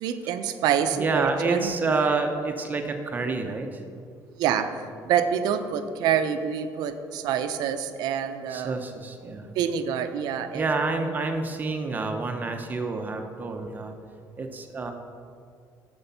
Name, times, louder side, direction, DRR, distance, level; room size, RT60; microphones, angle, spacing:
voice 1, 0.0-1.7 4.4-8.8 9.6-10.7, right 8 dB, 80° right, 9 dB, 0.6 m, -27 dB
voice 2, 0.9-3.8 8.5-9.5 10.5-13.9 14.4-14.9, right 3 dB, 25° right, 4 dB, 0.7 m, -28 dB
7.9 x 6.9 x 5.6 m, 2.3 s
cardioid pair, 145°, 7 cm